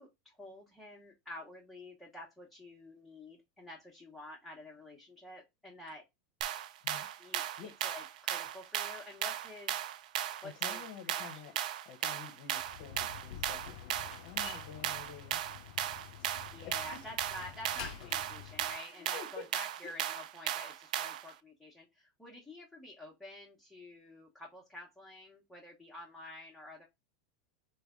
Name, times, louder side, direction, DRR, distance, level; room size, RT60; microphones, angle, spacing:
voice 1, 0.0-6.0 7.2-9.7 10.4-11.6 16.5-26.9, left 1 dB, ahead, 1.0 m, -49 dB
sound 1, 6.4-21.3, right 11 dB, 80° right, 0.3 m, -37 dB
voice 2, 10.4-11.5 11.8-15.4 16.6-17.0 18.8-19.5 19.8-19.9, left 7 dB, 50° left, 0.7 m, -49 dB
Slam, 12.6-18.8, left 11 dB, 70° left, 0.4 m, -49 dB
3.2 x 2.2 x 3.5 m
supercardioid pair, 135°, 4 cm